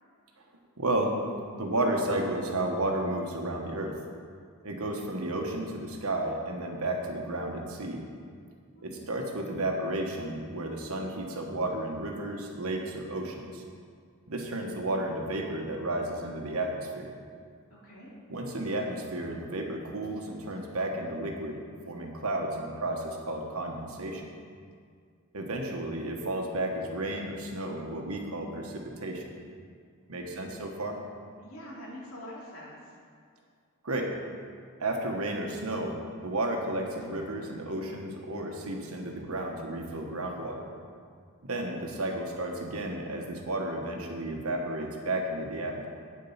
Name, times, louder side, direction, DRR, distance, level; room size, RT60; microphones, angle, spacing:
voice 1, 0.8-1.2 1.5-4.0 4.6-8.0 8.8-13.6 14.3-17.1 18.3-24.3 25.3-29.3 30.1-31.0 33.8-34.1 34.8-40.7 41.5-45.9, right 1 dB, 85° right, 2 dB, 1.4 m, -32 dB
voice 2, 8.7-9.1 17.7-18.1 30.2-30.5 31.4-33.0, equal, 75° left, -5 dB, 2.8 m, -45 dB
9.1 x 7.5 x 5.7 m, 2.1 s
head